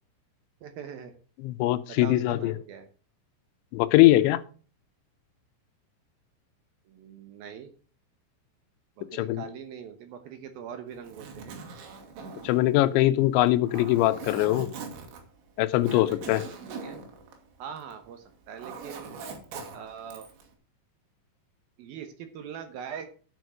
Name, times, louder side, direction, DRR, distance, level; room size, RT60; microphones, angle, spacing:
voice 1, 0.6-1.1 1.9-2.9 6.9-7.7 9.0-11.6 15.7-17.0 17.6-19.2 19.7-20.3 21.8-23.1, right 7 dB, 70° right, 2.5 m, -42 dB
voice 2, 1.4-2.5 3.7-4.4 9.1-9.4 12.4-14.7 15.6-16.4, left 16 dB, 85° left, 3.0 m, -22 dB
Zipper (clothing), 10.9-18.0 18.3-20.5, right 4 dB, 85° right, 4.4 m, -42 dB
10.5 x 6.9 x 6.2 m
omnidirectional pair, 5.2 m